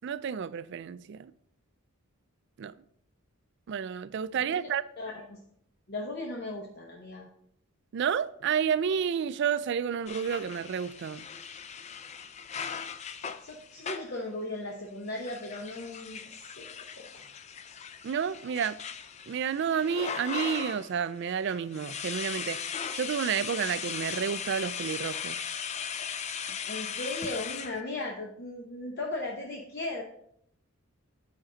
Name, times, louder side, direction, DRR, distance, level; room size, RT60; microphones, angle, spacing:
voice 1, 0.0-1.3 2.6-2.7 3.7-4.8 7.9-11.3 18.0-18.8 19.3-22.6 22.9-25.4, right 7 dB, 55° right, 0.3 m, -30 dB
voice 2, 5.0-5.4 5.9-7.3 13.4-17.2 26.7-30.0, left 2 dB, 45° left, 0.9 m, -37 dB
sound 1, 10.1-14.2 15.1-20.9 21.3-27.8, left 7 dB, 30° left, 0.3 m, -38 dB
8.9 x 5.2 x 3.9 m
head